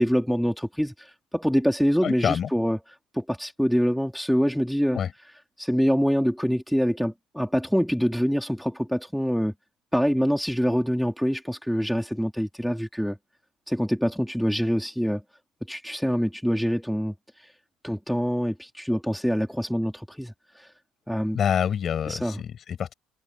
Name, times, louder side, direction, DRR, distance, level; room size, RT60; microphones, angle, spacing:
voice 1, 0.0-2.8 3.1-5.0 5.6-9.5 9.9-13.2 13.7-15.2 15.7-17.5 17.8-20.7 21.1-21.4 22.1-22.4, equal, ahead, 2.6 m, -25 dB
voice 2, 2.0-2.5 4.9-5.1 21.3-22.9, left 8 dB, 35° left, 7.5 m, -26 dB
cardioid pair, 150°, 0 cm